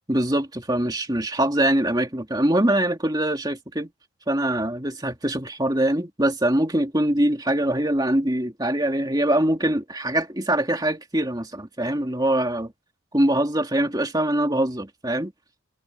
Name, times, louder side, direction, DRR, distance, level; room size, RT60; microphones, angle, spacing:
voice 1, 0.1-3.9 4.3-12.7 13.1-15.3, right 1 dB, 20° right, 2.4 m, -23 dB
head